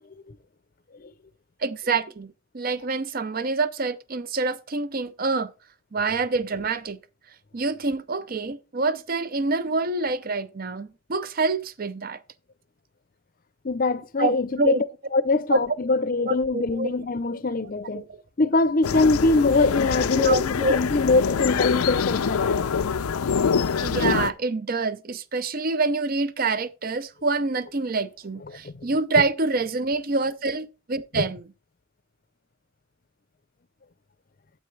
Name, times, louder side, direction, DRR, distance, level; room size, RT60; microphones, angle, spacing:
voice 1, 1.6-5.5 5.9-7.0 7.5-12.2 14.2-14.8 15.5-15.6 16.3-16.9 17.9-18.2 20.2-20.7 23.8-31.5, right 3 dB, 40° right, 0.6 m, -26 dB
voice 2, 13.6-14.8 15.1-18.0 18.4-22.7 28.5-28.8 31.1-31.2, left 3 dB, 40° left, 0.6 m, -23 dB
sound 1, 18.8-24.3, left 6 dB, 90° left, 0.5 m, -25 dB
9.1 x 8.5 x 3.3 m
head